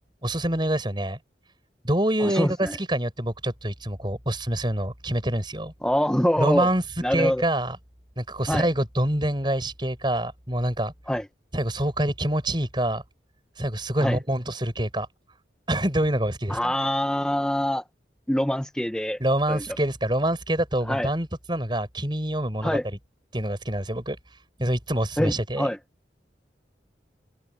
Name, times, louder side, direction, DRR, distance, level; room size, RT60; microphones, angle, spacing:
voice 1, 0.2-1.2 1.8-5.7 6.4-6.8 7.1-7.8 8.2-10.9 11.5-13.0 13.6-15.1 15.7-16.7 19.2-23.0 23.3-24.2 24.6-25.7, right 1 dB, 25° right, 5.7 m, -26 dB
voice 2, 2.2-2.8 5.8-6.7 7.0-7.4 8.5-8.7 11.1-11.3 14.0-14.2 16.5-17.8 18.3-19.2 19.5-19.7 20.9-21.1 22.6-22.8 25.2-25.8, equal, 5° left, 0.7 m, -24 dB
head